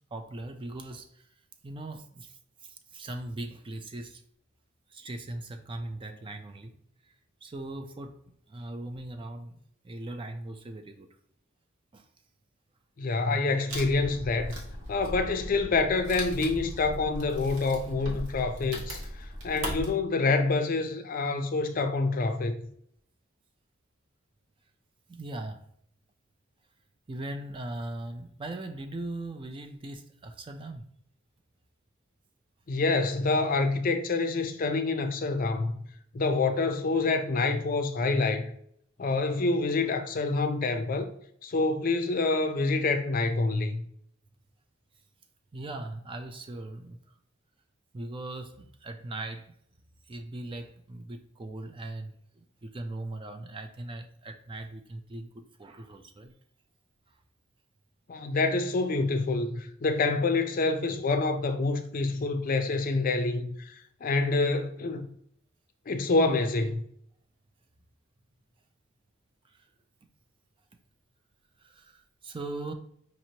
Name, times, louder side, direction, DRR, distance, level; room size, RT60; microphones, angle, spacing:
voice 1, 0.1-1.3 1.6-4.2 4.9-6.8 7.4-8.2 8.5-11.1 11.9-12.1 25.1-25.7 27.1-30.9 45.5-47.0 47.9-49.5 50.1-56.3 69.4-69.7 71.6-72.7, right 2 dB, 25° right, 0.4 m, -40 dB
voice 2, 13.0-14.5 14.9-22.6 32.7-35.7 36.1-38.5 39.0-41.1 41.4-43.8 58.1-63.8 64.0-65.1 65.9-66.9, left 3 dB, 45° left, 0.4 m, -27 dB
Wood, 13.7-19.9, equal, 80° right, 1.1 m, -38 dB
5.0 x 3.0 x 2.8 m
head